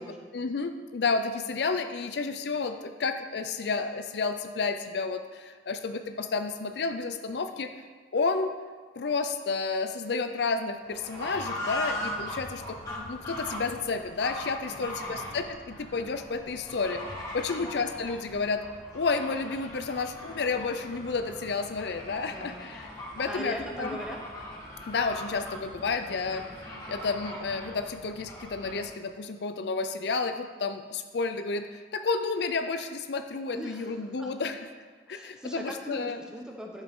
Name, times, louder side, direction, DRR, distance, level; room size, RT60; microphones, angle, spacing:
voice 1, 0.3-7.7 8.1-8.5 9.0-12.8 13.1-17.0 17.3-18.6 18.9-22.9 23.2-24.0 24.9-34.7 35.1-36.2, left 4 dB, 65° left, 8 dB, 0.5 m, -31 dB
Fowl / Bird, 10.8-28.9, left 1 dB, 20° left, 1.7 m, -40 dB
voice 2, 14.7-15.2 17.4-17.6 22.2-22.7 23.2-24.2 25.8-26.5 33.5-34.5 35.1-36.8, equal, 5° right, 0 dB, 1.0 m, -41 dB
sound 1, 19.9-30.5, right 1 dB, 65° right, 2.7 m, -52 dB
11.0 x 7.4 x 3.7 m, 1.5 s
head